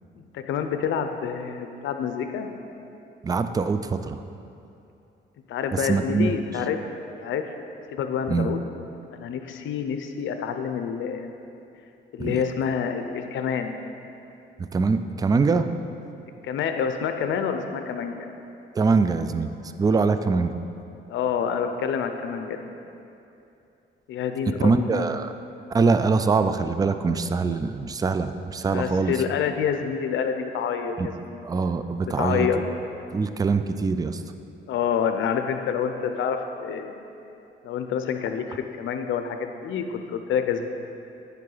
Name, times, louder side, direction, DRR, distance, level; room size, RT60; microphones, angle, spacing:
voice 1, 0.2-2.5 5.5-6.8 7.2-7.4 7.9-8.6 9.1-11.3 12.1-13.7 16.4-18.3 21.1-22.7 24.1-25.1 28.7-31.5 32.0-32.6 34.7-37.0 37.6-40.7, left 7 dB, 75° left, 7 dB, 0.6 m, -27 dB
voice 2, 3.2-4.2 5.8-6.3 8.3-8.5 12.2-12.4 14.6-15.7 18.8-19.5 19.8-20.5 24.6-25.3 25.7-29.2 31.0-31.1 31.4-32.5 33.1-34.2, right 4 dB, 20° right, 10 dB, 0.3 m, -23 dB
9.5 x 4.7 x 3.9 m, 2.8 s
cardioid pair, 90°, 20 cm